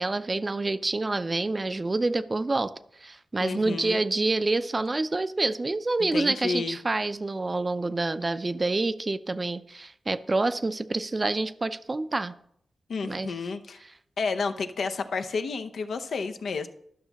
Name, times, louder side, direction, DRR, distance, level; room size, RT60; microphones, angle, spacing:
voice 1, 0.0-2.7 3.0-12.3 13.0-13.3, right 2 dB, 30° right, 12 dB, 0.4 m, -27 dB
voice 2, 3.4-4.0 6.1-6.8 12.9-13.8 14.2-16.7, left 4 dB, 75° left, 7 dB, 0.6 m, -31 dB
12.0 x 6.0 x 4.0 m, 0.71 s
cardioid pair, 85°, 0 cm